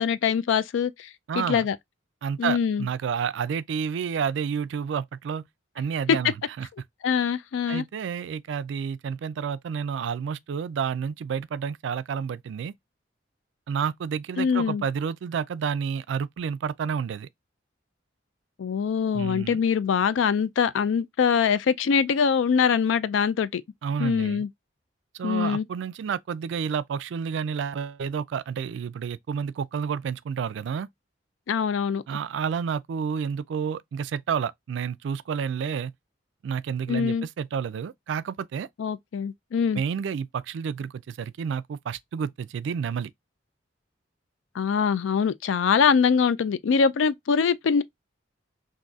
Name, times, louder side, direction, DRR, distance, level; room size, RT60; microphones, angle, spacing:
voice 1, 0.0-1.1 1.4-1.8 2.4-2.9 6.1-6.2 7.0-7.8 14.4-14.8 18.6-23.6 24.0-24.5 25.2-25.7 31.5-32.0 36.9-37.3 38.8-39.8 44.6-47.8, left 6 dB, 80° left, 0.4 m, -23 dB
voice 2, 1.3-1.7 2.2-5.5 5.8-6.7 7.7-12.7 13.7-17.3 19.1-19.6 23.8-24.4 25.1-30.9 32.1-35.9 36.4-38.7 39.7-43.1, right 7 dB, 70° right, 0.3 m, -30 dB
3.9 x 2.6 x 2.3 m
head